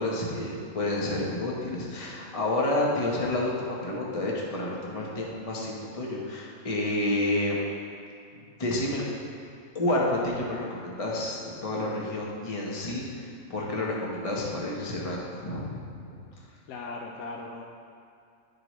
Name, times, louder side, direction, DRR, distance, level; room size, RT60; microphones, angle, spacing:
voice 1, 0.0-7.6 8.6-9.0 9.7-13.0 13.5-16.1, left 1 dB, 30° left, -3 dB, 1.0 m, -29 dB
voice 2, 16.7-17.6, left 3 dB, 85° left, 0 dB, 1.1 m, -38 dB
11.0 x 4.9 x 3.1 m, 2.4 s
omnidirectional pair, 1.4 m